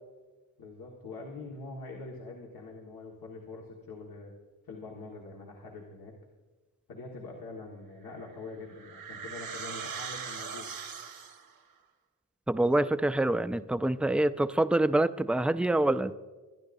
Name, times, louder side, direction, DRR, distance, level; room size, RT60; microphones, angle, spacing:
voice 1, 0.6-4.3 4.7-6.1 6.9-10.7, left 3 dB, 90° left, -2 dB, 1.7 m, -44 dB
sound 1, 8.1-11.6, right 6 dB, 80° right, 1.3 m, -40 dB
voice 2, 12.5-16.2, right 1 dB, 5° right, 12 dB, 0.3 m, -26 dB
23.5 x 10.5 x 2.6 m, 1.3 s
cardioid pair, 80°, 35 cm